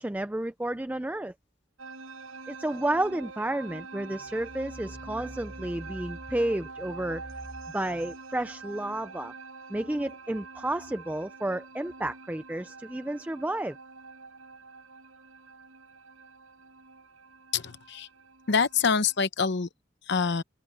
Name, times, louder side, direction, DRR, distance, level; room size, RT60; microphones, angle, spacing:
voice 1, 0.0-1.3 2.5-7.2 7.7-9.3 9.7-13.8, right 1 dB, 10° right, 0.4 m, -31 dB
sound 1, 1.8-19.2, right 3 dB, 80° right, 6.7 m, -46 dB
voice 2, 17.5-18.1 18.5-19.7 20.1-20.4, left 5 dB, 55° left, 0.8 m, -25 dB
head